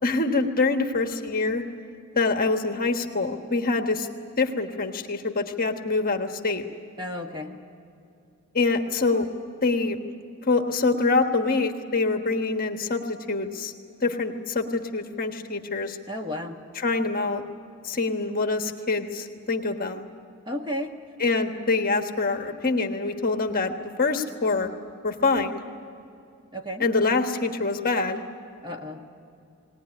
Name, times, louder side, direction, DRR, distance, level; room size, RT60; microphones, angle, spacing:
voice 1, 0.0-1.6 2.1-4.1 4.4-6.6 8.5-9.3 9.6-10.0 10.5-13.7 14.0-16.0 16.8-17.4 17.8-20.1 21.2-23.7 24.0-24.7 25.0-25.6 26.8-28.2, left 3 dB, 40° left, 5 dB, 1.3 m, -25 dB
voice 2, 7.0-7.5 16.1-16.6 20.5-20.9 26.5-26.8 28.6-29.0, left 1 dB, 20° right, 3 dB, 1.6 m, -32 dB
20.0 x 19.5 x 9.8 m, 2.6 s
head